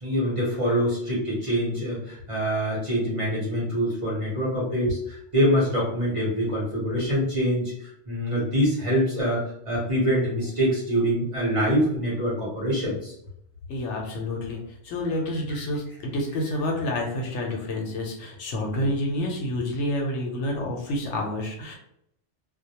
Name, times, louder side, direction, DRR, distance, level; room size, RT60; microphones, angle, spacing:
voice 1, 0.0-7.7 8.1-13.1 18.8-18.9, equal, 30° right, -6 dB, 0.8 m, -25 dB
voice 2, 13.7-21.7, left 1 dB, 75° left, 0 dB, 0.9 m, -29 dB
2.2 x 2.1 x 2.8 m, 0.75 s
omnidirectional pair, 1.2 m